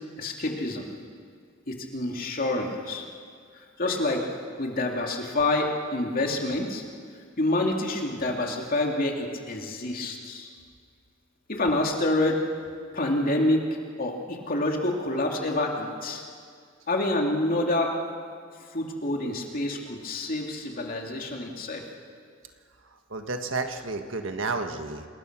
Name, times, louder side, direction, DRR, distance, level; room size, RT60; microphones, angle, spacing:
voice 1, 0.2-0.8 1.7-3.1 3.5-4.3 4.6-6.8 7.4-10.5 11.5-12.4 12.9-13.7 14.0-16.2 16.9-18.0 18.7-21.8, left 2 dB, 45° left, 1 dB, 2.7 m, -27 dB
voice 2, 22.8-25.0, right 3 dB, 80° right, 6 dB, 1.6 m, -31 dB
27.5 x 20.5 x 6.1 m, 2.1 s
head